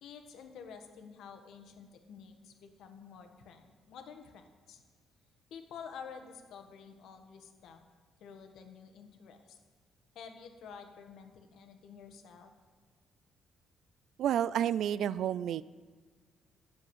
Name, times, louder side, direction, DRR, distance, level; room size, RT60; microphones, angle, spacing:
voice 1, 0.0-4.8 5.5-7.9 8.2-9.6 10.1-12.5, left 6 dB, 80° left, 5 dB, 1.4 m, -50 dB
voice 2, 14.2-15.6, right 10 dB, 75° right, 19 dB, 0.3 m, -30 dB
10.5 x 7.3 x 8.0 m, 1.5 s
cardioid pair, 90°, 0 cm